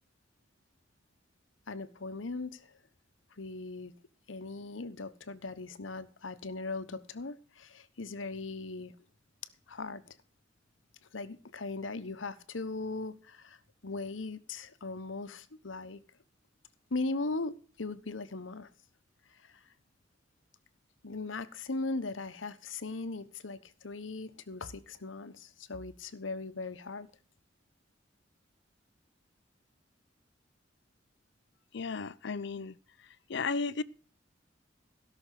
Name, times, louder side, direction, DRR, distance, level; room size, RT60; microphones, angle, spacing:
voice 1, 1.7-2.7 3.4-3.9 4.3-8.9 9.7-10.1 11.1-13.6 13.8-16.0 16.9-18.7 19.4-19.5 21.0-27.1, left 3 dB, 90° left, 1.1 m, -39 dB
voice 2, 31.7-32.8 33.3-33.8, left 4 dB, 65° left, 0.6 m, -34 dB
16.5 x 6.4 x 6.5 m
head